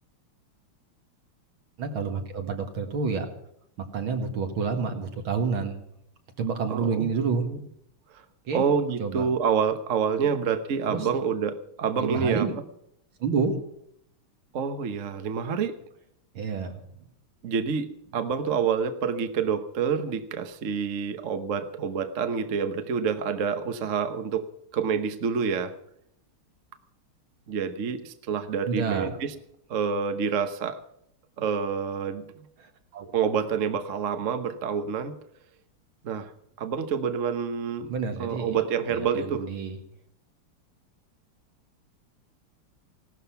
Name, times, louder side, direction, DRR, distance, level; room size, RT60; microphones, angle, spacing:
voice 1, 1.8-3.3 3.9-5.8 6.4-7.4 8.5-8.7 9.0-9.3 10.9-11.1 12.0-12.5 13.2-13.5 16.3-16.8 28.7-29.1 32.6-33.1 37.9-38.6 38.9-39.8, right 5 dB, 70° right, 5 dB, 2.6 m, -29 dB
voice 2, 6.7-7.1 7.5-7.6 8.5-12.5 14.5-15.8 17.4-24.5 24.7-25.7 27.5-29.3 29.7-30.8 31.4-32.3 33.1-35.1 36.0-36.3 36.6-37.9 38.2-39.5, right 6 dB, 45° right, 9 dB, 1.1 m, -27 dB
17.0 x 12.5 x 5.8 m, 0.73 s
omnidirectional pair, 2.4 m